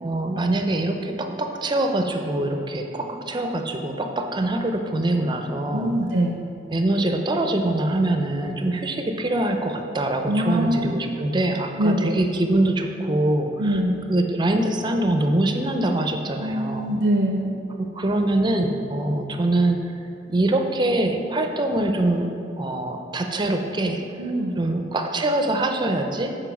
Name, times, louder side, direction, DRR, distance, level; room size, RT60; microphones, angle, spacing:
voice 1, 0.0-6.0 6.7-13.8 14.1-16.9 17.8-22.3 22.6-24.0 24.6-26.4, right 1 dB, 25° right, 5 dB, 0.5 m, -24 dB
voice 2, 5.7-6.3 10.3-11.0 11.8-12.1 13.6-14.0 16.4-17.6 24.2-24.5, right 1 dB, 85° right, 0 dB, 0.6 m, -23 dB
7.0 x 4.4 x 5.9 m, 2.7 s
head